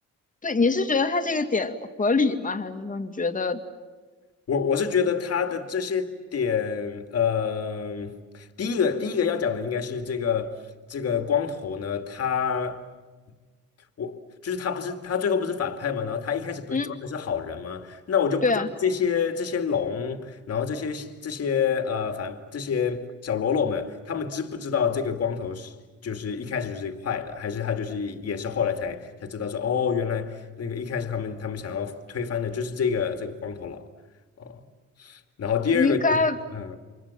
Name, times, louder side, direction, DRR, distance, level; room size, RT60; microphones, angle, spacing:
voice 1, 0.4-3.6 16.7-16.9 18.4-18.7 35.7-36.4, left 3 dB, 25° left, 2.4 m, -24 dB
voice 2, 4.5-10.6 10.9-12.9 14.0-25.7 26.0-33.9 34.4-34.6 35.0-36.2 36.5-36.8, left 6 dB, 55° left, 2.5 m, -28 dB
29.5 x 24.5 x 7.4 m
cardioid pair, 90°, 30 cm